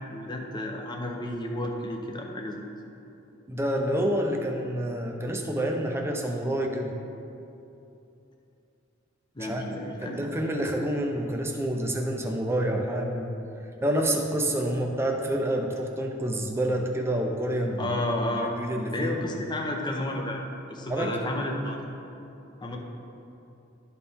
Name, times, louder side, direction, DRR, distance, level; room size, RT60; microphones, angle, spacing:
voice 1, 0.0-2.6 9.4-10.2 17.8-18.5 18.9-20.4 20.7-21.8 22.6-22.8, left 1 dB, 20° left, 1 dB, 0.7 m, -31 dB
voice 2, 3.5-6.9 9.4-9.6 10.0-13.3 13.8-17.9 18.4-19.1 20.9-21.1, right 1 dB, 15° right, 1 dB, 0.6 m, -28 dB
12.0 x 4.4 x 3.6 m, 2.8 s
head